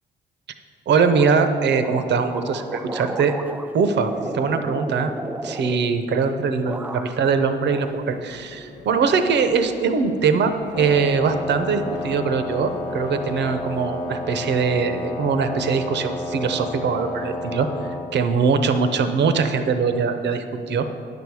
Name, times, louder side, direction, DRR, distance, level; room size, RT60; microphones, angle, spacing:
voice 1, 0.9-3.3 3.7-5.1 5.4-20.9, right 5 dB, 60° right, 8 dB, 0.7 m, -22 dB
sound 1, 1.0-6.3 6.6-7.4 7.7-8.6, right 2 dB, 10° right, 0.3 m, -34 dB
sound 2, 7.7-13.9, left 1 dB, 65° left, 1.2 m, -45 dB
Wind instrument woodwind instrument, 10.7-18.1, left 1 dB, 15° left, 1.2 m, -31 dB
9.6 x 7.0 x 4.7 m, 2.5 s
cardioid pair, 90°, 20 cm